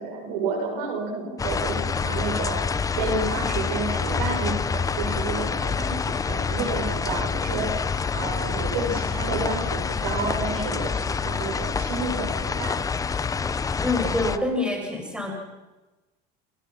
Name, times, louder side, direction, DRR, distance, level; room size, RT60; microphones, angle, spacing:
voice 1, 0.0-2.6 2.9-7.7 8.1-12.8, right 3 dB, 85° right, 2 dB, 7.1 m, -30 dB
sound 1, 1.4-14.4, left 5 dB, 15° left, 0.9 m, -27 dB
voice 2, 13.8-15.3, left 2 dB, 5° right, 1 dB, 6.9 m, -26 dB
29.5 x 20.5 x 6.0 m, 1.1 s
supercardioid pair, 130°, 20 cm